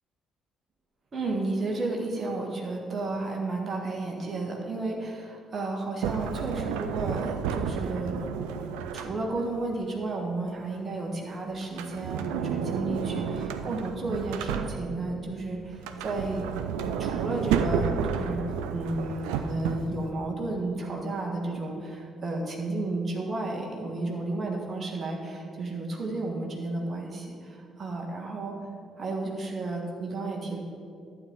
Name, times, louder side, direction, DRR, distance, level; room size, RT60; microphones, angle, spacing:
voice 1, 1.1-8.2 8.9-16.4 16.8-18.4 18.7-28.7 29.0-30.6, right 2 dB, 35° right, 0 dB, 1.5 m, -32 dB
Sliding door, 6.0-9.5 11.6-15.1 15.7-20.1, right 7 dB, 65° right, 0.4 m, -31 dB
11.5 x 8.4 x 3.9 m, 2.5 s
figure-of-eight pair, 45°, 0 cm